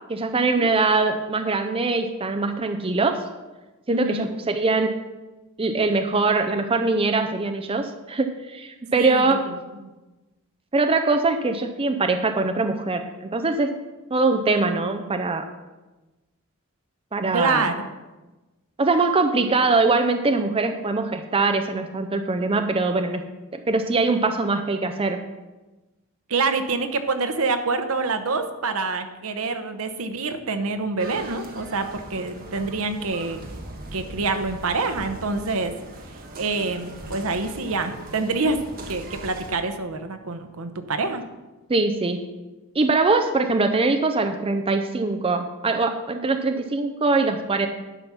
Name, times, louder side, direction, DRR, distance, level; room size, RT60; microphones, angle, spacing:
voice 1, 0.1-3.2 3.9-5.0 5.6-9.4 10.7-13.7 14.1-15.5 17.1-17.7 18.8-23.2 23.5-25.2 41.7-42.3 42.7-47.7, right 3 dB, 25° right, 6 dB, 0.5 m, -22 dB
voice 2, 3.9-4.3 9.0-9.2 9.8-9.9 17.3-17.8 26.3-33.4 33.9-35.7 36.4-38.6 38.9-41.2, right 3 dB, 70° right, 8 dB, 0.9 m, -26 dB
sound 1, 31.0-39.6, right 1 dB, 45° right, 1.4 m, -40 dB
11.0 x 5.6 x 6.1 m, 1.1 s
head